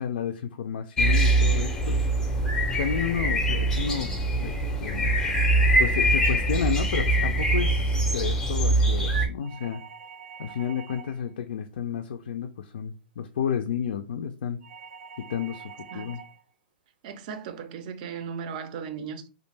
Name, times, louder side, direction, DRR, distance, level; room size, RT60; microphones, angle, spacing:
voice 1, 0.0-2.0 2.8-5.2 5.8-9.8 10.4-14.6 15.2-16.2, left 8 dB, 80° left, 0.3 m, -31 dB
sound 1, 1.0-9.3, right 1 dB, 10° left, 0.5 m, -23 dB
sound 2, 9.4-11.3 14.6-16.4, right 6 dB, 85° right, 0.6 m, -45 dB
voice 2, 17.0-19.3, right 6 dB, 50° right, 0.4 m, -37 dB
2.4 x 2.1 x 3.2 m
hypercardioid pair, 150°, 6 cm